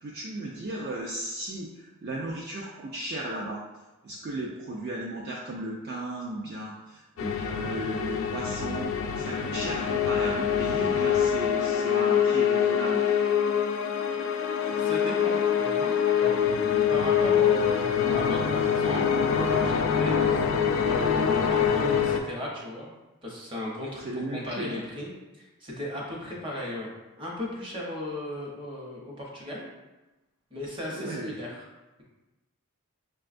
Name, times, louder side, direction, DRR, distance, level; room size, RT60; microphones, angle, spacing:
voice 1, 0.0-3.6 4.0-13.1 20.5-20.8 24.0-24.8 30.9-31.3, right 1 dB, 45° right, -2 dB, 0.3 m, -35 dB
sound 1, 7.2-22.2, left 7 dB, 60° left, 0.3 m, -25 dB
voice 2, 14.6-16.4 16.9-22.9 23.2-25.1 25.4-26.9 27.2-29.7 30.5-31.6, left 1 dB, 25° right, -3 dB, 0.8 m, -36 dB
5.4 x 2.3 x 2.5 m, 1.1 s
head